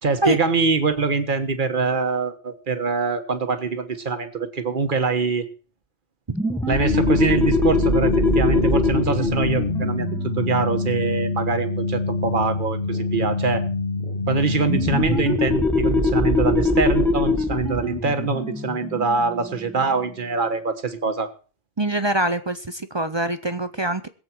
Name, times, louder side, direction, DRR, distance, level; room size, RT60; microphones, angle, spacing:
voice 1, 0.0-5.4 6.7-10.1 10.3-13.6 14.3-21.3, right 4 dB, 55° right, 8 dB, 1.5 m, -24 dB
sound 1, 6.3-11.6 14.7-20.0, left 2 dB, ahead, 1.3 m, -23 dB
sound 2, 6.9-15.2, left 2 dB, 50° left, 1.9 m, -26 dB
voice 2, 21.8-24.1, right 1 dB, 30° right, 11 dB, 0.6 m, -24 dB
21.5 x 8.0 x 4.5 m, 0.38 s
omnidirectional pair, 1.1 m